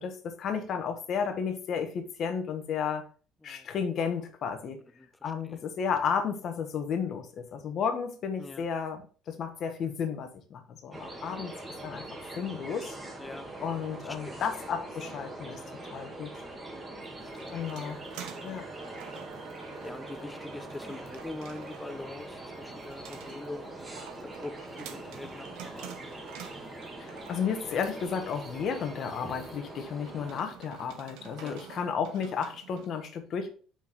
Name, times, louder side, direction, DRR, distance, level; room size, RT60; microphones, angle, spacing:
voice 1, 0.0-3.1 3.4-4.8 5.2-11.5 11.8-12.0 12.3-12.9 13.6-15.6 15.9-16.4 17.5-18.0 18.4-18.7 27.0-33.5, left 6 dB, 50° left, 6 dB, 1.2 m, -33 dB
voice 2, 5.0-5.6 8.4-8.7 13.2-13.5 14.0-14.4 16.7-18.4 18.7-18.9 19.8-23.9 24.2-26.2 31.4-31.6, left 2 dB, 10° left, 11 dB, 0.6 m, -44 dB
sound 1, 10.9-30.4, right 2 dB, 20° right, 1.7 m, -43 dB
sound 2, 17.0-32.9, right 9 dB, 80° right, 0.9 m, -50 dB
Bowed string instrument, 17.2-22.0, right 4 dB, 55° right, 2.6 m, -53 dB
5.7 x 4.9 x 3.4 m, 0.39 s
cardioid pair, 120°, 0 cm